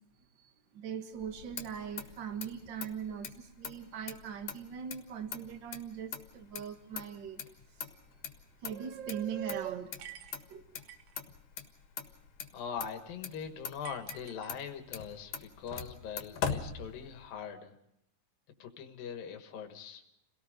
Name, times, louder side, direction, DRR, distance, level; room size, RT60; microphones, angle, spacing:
voice 1, 0.3-7.4 7.7-7.8 8.6-9.9 10.5-10.7, right 8 dB, 45° right, 7 dB, 1.7 m, -40 dB
Motor vehicle (road), 1.2-17.4, left 7 dB, 65° left, 3.0 m, -43 dB
sound 1, 10.0-11.2 13.8-15.0, right 11 dB, 75° right, 2.8 m, -50 dB
voice 2, 12.5-17.7 18.6-20.0, left 7 dB, 85° left, 5 dB, 3.2 m, -42 dB
29.0 x 18.0 x 5.2 m, 0.80 s
omnidirectional pair, 3.9 m